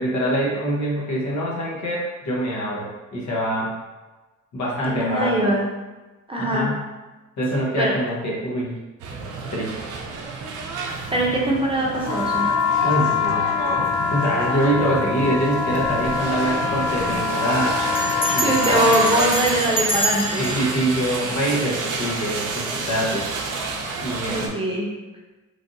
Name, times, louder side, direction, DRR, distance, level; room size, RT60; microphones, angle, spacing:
voice 1, 0.0-3.7 4.5-5.5 6.4-6.8 7.4-8.8 9.5-9.7 12.8-17.8 18.3-18.9 20.4-23.6 24.0-24.6, right 1 dB, 65° left, -4 dB, 1.0 m, -25 dB
voice 2, 4.8-5.7 6.3-6.7 7.8-8.0 11.1-12.5 18.2-20.4 24.3-24.9, right 1 dB, 20° right, -3 dB, 0.7 m, -22 dB
sound 1, 9.0-24.5, right 4 dB, 90° right, 0.5 m, -29 dB
sound 2, 12.0-19.3, left 6 dB, 50° left, 0.6 m, -24 dB
Bell, 16.0-16.2 16.5-16.6 16.8-17.2 17.9-22.0, right 1 dB, 15° left, 1.0 m, -28 dB
3.2 x 2.5 x 2.6 m, 1.2 s
cardioid pair, 90°, 30 cm